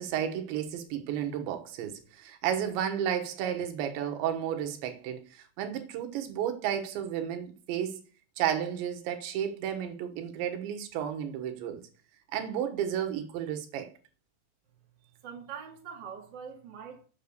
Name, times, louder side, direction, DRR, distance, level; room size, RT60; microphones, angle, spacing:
voice 1, 0.0-8.0 8.4-11.8 12.3-13.9, right 9 dB, 85° right, 3.6 m, -32 dB
voice 2, 15.0-17.0, right 7 dB, 35° right, 1.8 m, -43 dB
8.7 x 7.2 x 6.7 m
omnidirectional pair, 5.1 m